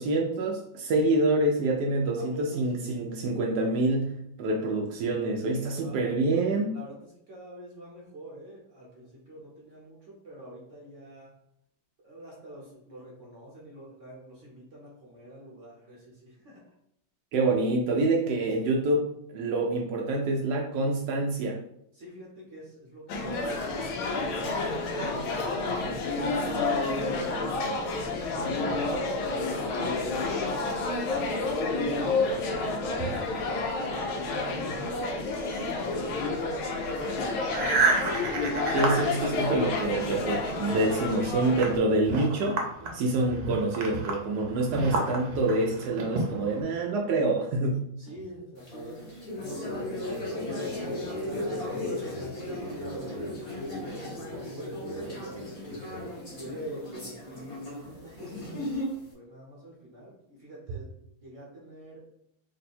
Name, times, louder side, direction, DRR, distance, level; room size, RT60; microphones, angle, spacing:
voice 1, 0.0-6.8 17.3-21.6 38.7-42.6 42.9-47.9, right 2 dB, 85° right, 0 dB, 0.9 m, -26 dB
voice 2, 2.2-2.7 4.5-4.9 5.7-6.1 6.7-7.0 7.3-11.3 12.0-16.6 21.9-24.1 24.8-30.1 30.6-35.0 35.6-37.8 42.8-43.1 48.0-49.0 49.3-55.5 56.4-60.9 61.2-62.0, right 1 dB, 50° right, -5 dB, 1.0 m, -45 dB
sound 1, 23.1-41.8, left 3 dB, 85° left, 1.4 m, -30 dB
sound 2, 36.9-40.1 40.5-46.6, right 3 dB, 65° right, 1.3 m, -31 dB
sound 3, 48.6-59.1, left 1 dB, 30° left, 0.6 m, -36 dB
3.6 x 2.2 x 4.1 m, 0.74 s
omnidirectional pair, 2.3 m